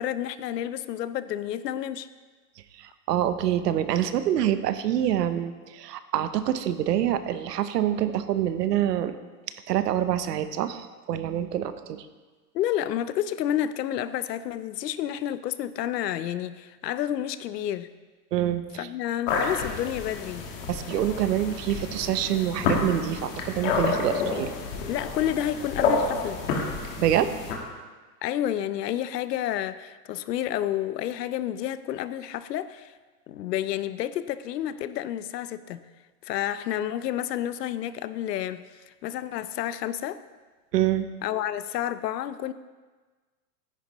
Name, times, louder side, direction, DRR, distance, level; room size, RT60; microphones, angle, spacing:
voice 1, 0.0-2.1 12.5-17.9 18.8-20.5 24.9-26.4 28.2-32.9 33.3-35.8 36.2-38.7 39.0-40.2 41.2-42.5, left 11 dB, 80° left, 14 dB, 0.7 m, -30 dB
voice 2, 3.1-9.1 9.7-12.0 18.3-18.9 20.7-24.5 27.0-27.3 40.7-41.1, right 11 dB, 75° right, 11 dB, 0.9 m, -26 dB
sound 1, 19.3-27.5, left 4 dB, 35° left, 1.5 m, -29 dB
13.5 x 10.0 x 3.1 m, 1.3 s
supercardioid pair, 175°, 48 cm